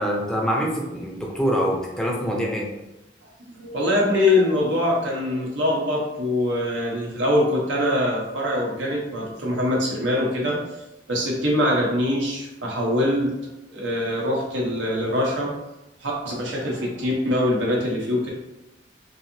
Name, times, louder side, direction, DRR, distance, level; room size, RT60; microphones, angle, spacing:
voice 1, 0.0-2.7, equal, 5° left, -3 dB, 0.5 m, -25 dB
voice 2, 3.5-10.6 11.1-13.3 13.7-15.5 16.0-18.3, left 1 dB, 80° right, -2 dB, 0.9 m, -23 dB
3.3 x 2.7 x 2.7 m, 0.94 s
head